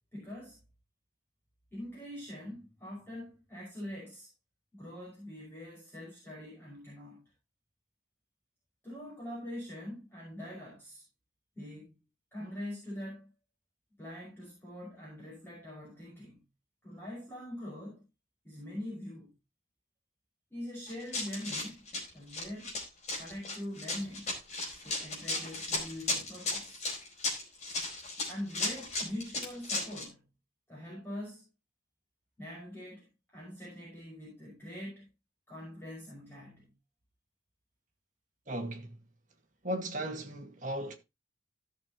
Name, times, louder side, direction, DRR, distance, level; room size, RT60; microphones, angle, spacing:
voice 1, 0.1-0.6 1.7-4.3 4.7-7.2 8.8-11.0 11.5-12.0 12.3-13.3 14.0-16.4 16.8-18.1 18.4-19.3 20.5-21.9 22.1-22.8 23.2-24.3 24.8-26.9 28.3-30.3 30.7-31.4 32.4-35.1 35.5-36.7, left 1 dB, 10° left, 5.8 m, -43 dB
Run, 20.9-30.1, left 2 dB, 35° left, 4.8 m, -35 dB
voice 2, 38.5-38.9 39.6-40.9, right 1 dB, 40° right, 1.9 m, -36 dB
16.5 x 6.7 x 3.0 m
head